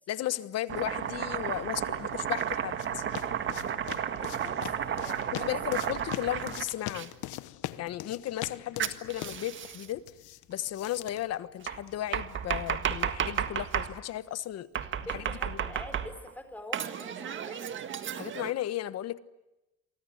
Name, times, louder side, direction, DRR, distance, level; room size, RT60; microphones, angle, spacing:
voice 1, 0.1-3.1 5.3-7.1 7.8-10.0 10.5-14.7 15.1-15.2 18.2-19.2, left 13 dB, 55° left, 14 dB, 1.3 m, -35 dB
Domestic sounds home sounds, 0.7-7.1 8.8-9.9 11.7-13.9 14.7-16.3 16.7-18.5, right 8 dB, 40° right, 1.8 m, -33 dB
sound 1, 2.1-12.1, left 15 dB, 85° left, 1.2 m, -43 dB
voice 2, 4.2-5.8 15.1-17.7, left 1 dB, 5° left, 8 dB, 4.2 m, -46 dB
29.0 x 24.0 x 8.1 m, 0.95 s
cardioid pair, 155°, 29 cm